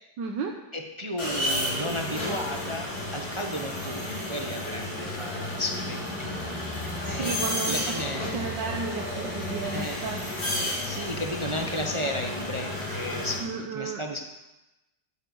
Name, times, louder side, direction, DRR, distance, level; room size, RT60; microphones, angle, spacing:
voice 1, 0.2-0.6 7.0-8.0 8.3-10.2 13.4-14.0, right 5 dB, 80° right, 2 dB, 1.6 m, -33 dB
voice 2, 0.7-8.6 9.7-10.0 10.6-14.2, equal, 25° right, 3 dB, 0.7 m, -34 dB
sound 1, 1.2-13.4, left 1 dB, 90° left, 5.4 m, -32 dB
12.0 x 8.3 x 7.0 m, 0.99 s
omnidirectional pair, 2.0 m